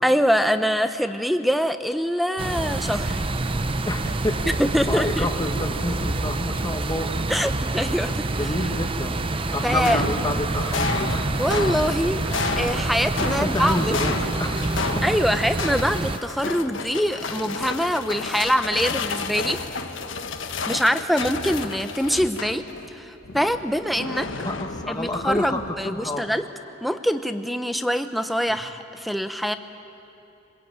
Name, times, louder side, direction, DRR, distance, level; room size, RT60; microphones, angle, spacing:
voice 1, 0.0-3.2 4.6-5.3 7.3-8.3 9.6-10.0 11.4-12.2 12.5-13.9 15.0-19.6 20.7-22.6 22.9-24.3 24.9-26.4 26.8-29.5, equal, ahead, 9 dB, 0.9 m, -24 dB
sound 1, 2.4-16.2, right 2 dB, 25° right, 0.7 m, -27 dB
voice 2, 3.8-4.3 4.8-7.2 8.3-9.2 9.5-11.2 13.2-14.6 24.4-26.3 28.5-28.6, left 1 dB, 20° left, 4 dB, 1.7 m, -29 dB
sound 2, 9.5-22.9 23.2-26.0, left 4 dB, 70° left, 1.2 m, -31 dB
24.5 x 21.5 x 9.0 m, 2.8 s
head